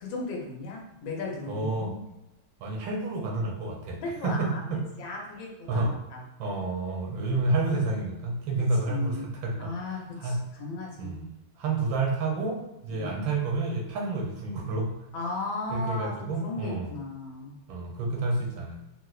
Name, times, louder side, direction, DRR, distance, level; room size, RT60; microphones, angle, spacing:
voice 1, 0.0-2.0 4.0-4.6 5.0-6.2 8.6-9.3 9.6-11.2 12.9-13.2 15.1-17.6, left 3 dB, 80° left, -1 dB, 1.5 m, -36 dB
voice 2, 1.5-1.9 2.6-4.8 5.7-5.9 6.4-9.7 10.2-10.4 11.0-14.9 15.7-16.9 17.7-18.8, right 2 dB, 85° right, 0 dB, 1.4 m, -29 dB
4.2 x 2.1 x 2.3 m, 0.91 s
omnidirectional pair, 2.1 m